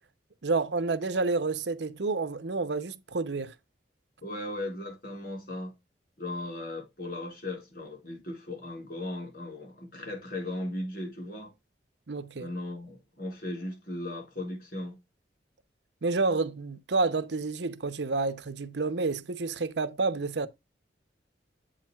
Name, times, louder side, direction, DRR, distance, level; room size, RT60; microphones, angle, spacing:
voice 1, 0.4-3.5 12.1-12.5 16.0-20.5, right 3 dB, 75° right, 0.7 m, -29 dB
voice 2, 4.2-5.7 6.2-11.5 12.4-15.0, left 1 dB, 55° left, 5.0 m, -37 dB
8.3 x 7.5 x 2.3 m
head